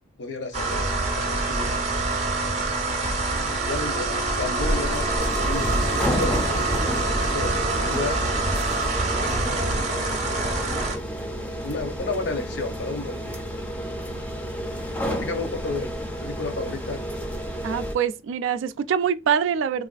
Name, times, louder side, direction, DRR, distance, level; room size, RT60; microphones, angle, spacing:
voice 1, 0.2-1.8 3.6-6.4 6.8-8.2 8.7-10.3 11.1-11.4 11.6-13.6 14.1-14.2 15.1-17.0, left 3 dB, 65° left, 0.7 m, -33 dB
sound 1, 0.5-11.0, right 2 dB, 35° right, 0.6 m, -25 dB
sound 2, 4.6-17.9, equal, 10° left, 0.4 m, -31 dB
voice 2, 17.6-19.9, right 7 dB, 85° right, 0.3 m, -24 dB
3.3 x 2.4 x 2.3 m
head